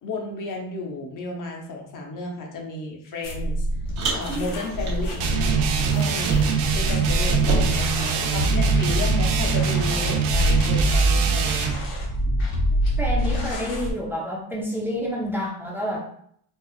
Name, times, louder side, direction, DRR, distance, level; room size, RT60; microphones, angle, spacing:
voice 1, 0.0-3.7 4.1-5.5 5.8-11.8, left 3 dB, 40° left, 1 dB, 0.7 m, -33 dB
sound 1, 3.2-13.9, right 1 dB, 80° left, 1.0 m, -25 dB
Car, 4.0-6.8 7.0-8.8, right 3 dB, 35° right, 0.8 m, -30 dB
sound 2, 5.2-11.8, right 7 dB, 90° right, 0.7 m, -24 dB
voice 2, 13.0-16.1, equal, 5° right, -3 dB, 0.3 m, -29 dB
4.4 x 2.3 x 2.3 m, 0.64 s
cardioid pair, 165°, 48 cm